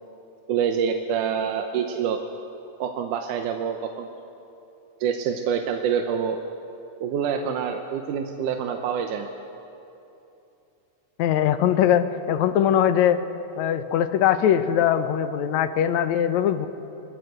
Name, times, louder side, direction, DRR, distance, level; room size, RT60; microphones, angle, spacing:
voice 1, 0.5-2.2 2.8-4.1 5.0-6.4 7.0-9.3, right 7 dB, 85° right, 4 dB, 2.5 m, -26 dB
voice 2, 11.2-13.2 13.6-16.7, left 10 dB, 70° left, 10 dB, 2.1 m, -21 dB
22.0 x 21.0 x 8.0 m, 2.9 s
omnidirectional pair, 3.5 m